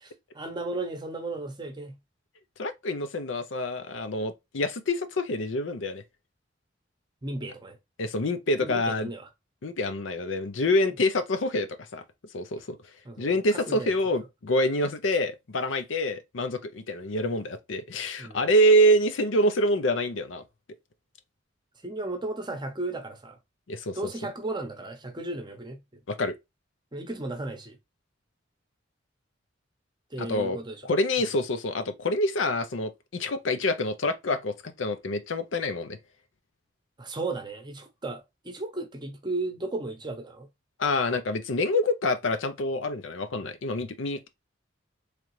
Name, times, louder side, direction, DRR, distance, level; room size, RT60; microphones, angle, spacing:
voice 1, 0.0-1.9 7.2-7.8 8.6-9.3 13.0-13.9 18.2-18.5 21.8-23.4 24.0-25.8 26.9-27.8 30.1-30.8 37.0-40.5, right 2 dB, 25° right, 0.8 m, -35 dB
voice 2, 2.6-6.0 8.0-9.1 9.6-12.0 12.3-12.8 13.2-20.4 23.7-24.0 26.1-26.4 30.2-30.6 30.8-36.0 40.8-44.3, left 1 dB, 75° left, 0.6 m, -26 dB
3.8 x 3.3 x 3.1 m
head